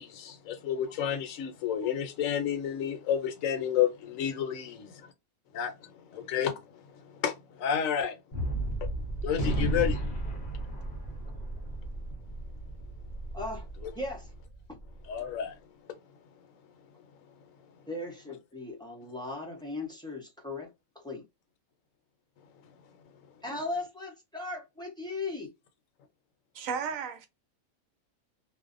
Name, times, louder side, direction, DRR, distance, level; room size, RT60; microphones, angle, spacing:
voice 1, 0.0-5.0 5.5-5.7 6.1-6.5 7.2-8.2 9.2-10.0 13.8-13.9 15.1-15.6, left 9 dB, 70° left, 1.0 m, -30 dB
Gunshot gunfire, 8.3-14.9, right 1 dB, 45° left, 0.7 m, -34 dB
voice 2, 13.3-13.7 14.0-14.3 17.9-20.7 21.0-21.2 23.4-25.5, left 2 dB, 5° left, 0.3 m, -37 dB
voice 3, 26.5-27.3, right 6 dB, 70° right, 1.0 m, -34 dB
2.6 x 2.1 x 2.4 m
omnidirectional pair, 1.5 m